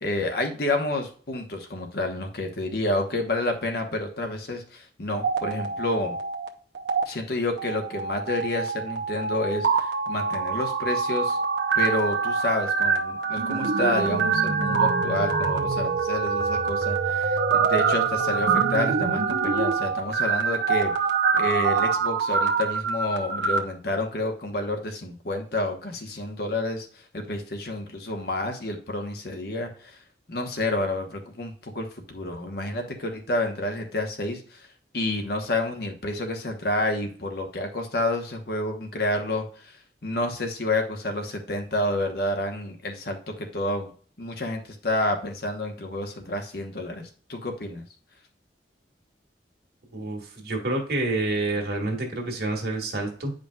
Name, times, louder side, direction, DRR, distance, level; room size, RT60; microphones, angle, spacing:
voice 1, 0.0-6.2 7.1-11.4 11.7-20.9 21.4-26.9 27.1-30.0 30.3-34.7 34.9-39.8 40.0-43.9 44.2-47.8, left 1 dB, 60° left, 4 dB, 1.2 m, -29 dB
sound 1, 5.1-6.5 6.8-7.0 7.6-23.6, right 5 dB, 75° right, 0.7 m, -25 dB
voice 2, 49.9-53.3, right 2 dB, 60° right, 1 dB, 1.7 m, -28 dB
9.1 x 5.1 x 2.4 m, 0.43 s
head